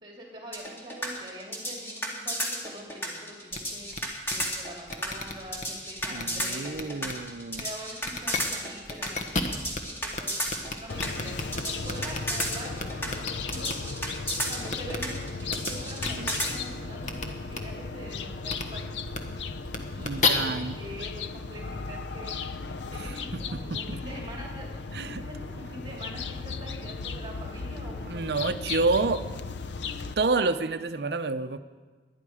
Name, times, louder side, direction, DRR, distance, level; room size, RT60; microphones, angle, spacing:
voice 1, 0.0-7.1 7.6-9.4 10.0-13.9 14.5-19.0 19.9-22.3 22.9-28.4 28.8-28.9, equal, 25° right, -1 dB, 2.2 m, -44 dB
sound 1, 0.5-16.5, equal, 15° left, 2.2 m, -32 dB
sound 2, 3.5-3.6 3.9-4.0 4.3-4.4 4.9-5.6 6.0-6.4 6.7-7.1 7.5-7.6 8.0-8.4 8.8-9.8 10.1-10.2 10.5-12.4 12.8-13.7 14.7-15.0 15.5-15.7 16.0-16.1 17.0-17.2 17.5-17.6 18.5-18.6 19.1-19.2 19.6-20.3, left 4 dB, 45° left, 1.2 m, -31 dB
voice 2, 6.1-7.6 16.2-16.3 20.0-20.7 22.9-24.0 24.9-25.2 28.1-29.2 30.2-31.6, right 3 dB, 70° right, 8 dB, 0.6 m, -29 dB
sound 3, 10.9-30.1, left 4 dB, 90° left, 0.6 m, -36 dB
20.5 x 11.0 x 4.9 m, 1.4 s
head